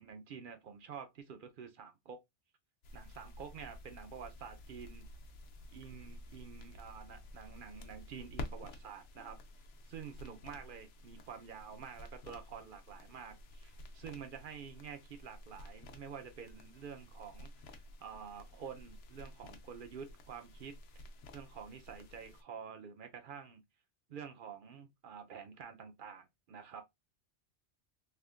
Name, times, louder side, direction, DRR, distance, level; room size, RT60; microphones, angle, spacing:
voice 1, 0.0-2.2 2.9-5.1 5.7-9.4 9.9-20.8 21.3-23.6 24.1-26.8, right 7 dB, 55° right, 0.7 m, -49 dB
sound 1, 2.8-22.4, left 1 dB, 85° left, 1.0 m, -51 dB
3.5 x 2.4 x 2.4 m
omnidirectional pair, 1.2 m